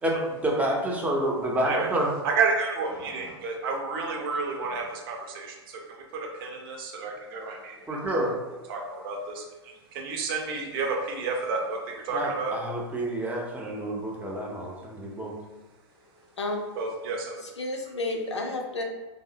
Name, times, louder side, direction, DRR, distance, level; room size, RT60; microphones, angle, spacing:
voice 1, 0.0-2.1 7.9-8.3 12.1-15.4, right 1 dB, 10° right, -2 dB, 0.6 m, -28 dB
voice 2, 2.2-7.8 8.0-8.1 8.7-12.5 16.8-17.4, right 4 dB, 55° right, 1 dB, 0.7 m, -31 dB
voice 3, 17.4-18.8, left 2 dB, 85° left, 2 dB, 0.5 m, -31 dB
3.3 x 2.0 x 2.7 m, 1.2 s
figure-of-eight pair, 95°, 14 cm